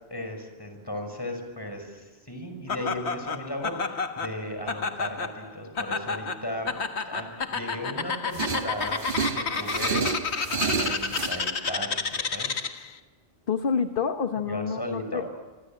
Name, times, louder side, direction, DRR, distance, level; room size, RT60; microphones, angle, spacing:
voice 1, 0.1-6.7 7.0-9.0 9.3-10.0 10.5-12.5 14.5-15.2, left 1 dB, 20° left, 4 dB, 6.1 m, -36 dB
Laughter, 2.7-12.9, left 4 dB, 90° left, 1.8 m, -31 dB
sound 1, 8.3-11.4, right 5 dB, 55° right, 1.5 m, -30 dB
voice 2, 13.5-15.4, left 6 dB, 55° left, 8 dB, 1.2 m, -28 dB
26.5 x 25.5 x 9.0 m, 1.3 s
omnidirectional pair, 1.1 m